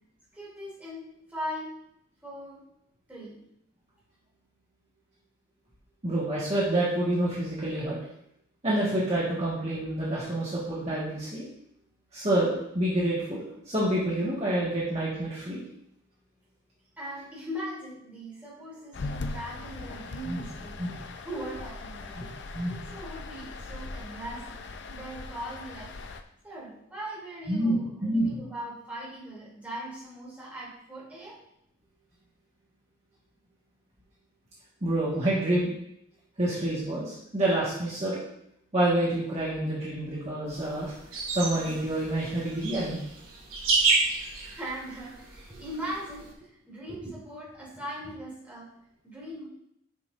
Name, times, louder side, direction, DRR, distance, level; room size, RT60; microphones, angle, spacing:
voice 1, 0.3-1.8 2.2-2.6 3.1-3.4 17.0-20.8 21.2-22.2 22.6-25.9 26.4-31.4 44.3-48.7 49.0-49.5, equal, 5° right, -7 dB, 2.7 m, -40 dB
voice 2, 6.0-8.0 8.6-11.5 12.1-15.6 20.2-20.4 20.8-20.9 21.3-21.5 22.2-22.3 22.5-22.9 27.5-28.4 34.8-35.7 36.4-38.2 38.7-40.9 41.3-43.0, right 1 dB, 30° right, -8 dB, 1.5 m, -28 dB
sound 1, 18.9-26.2, left 3 dB, 55° left, 0.5 m, -40 dB
sound 2, 40.5-46.3, right 4 dB, 75° right, 2.0 m, -31 dB
9.6 x 5.9 x 2.5 m, 0.76 s
head